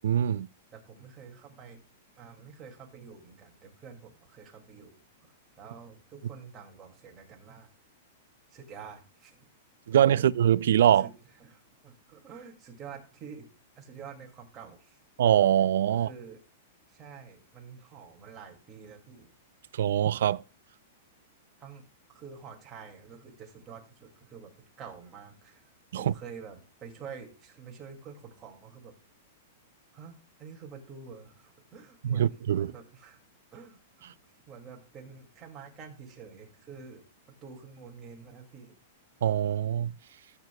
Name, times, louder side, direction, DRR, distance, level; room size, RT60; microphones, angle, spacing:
voice 1, 0.0-0.5 9.9-11.1 15.2-16.1 19.8-20.4 25.9-26.1 32.0-32.7 39.2-39.9, right 10 dB, 75° right, 0.3 m, -23 dB
voice 2, 0.7-1.8 2.2-5.0 5.6-7.7 8.5-9.5 9.9-10.3 11.0-11.1 11.4-13.5 13.8-15.0 15.9-16.4 16.9-19.3 21.6-28.9 29.9-33.2 33.5-34.1 34.5-37.1 37.4-38.7, right 6 dB, 20° right, 2.3 m, -48 dB
15.0 x 8.1 x 2.3 m
supercardioid pair, 160°, 0 cm